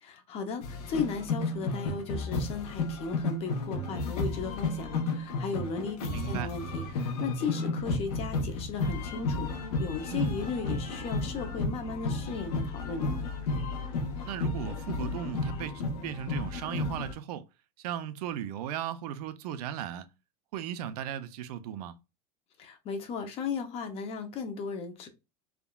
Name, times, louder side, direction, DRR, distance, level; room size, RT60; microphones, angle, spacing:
voice 1, 0.0-13.2 22.6-25.1, left 5 dB, 30° left, 0.6 m, -36 dB
sound 1, 0.6-17.1, left 3 dB, 75° left, 0.9 m, -33 dB
voice 2, 6.1-6.5 10.1-10.3 14.3-17.5 17.8-20.1 20.5-21.9, right 10 dB, 75° right, 0.5 m, -36 dB
3.5 x 2.3 x 2.3 m
supercardioid pair, 160°, 20 cm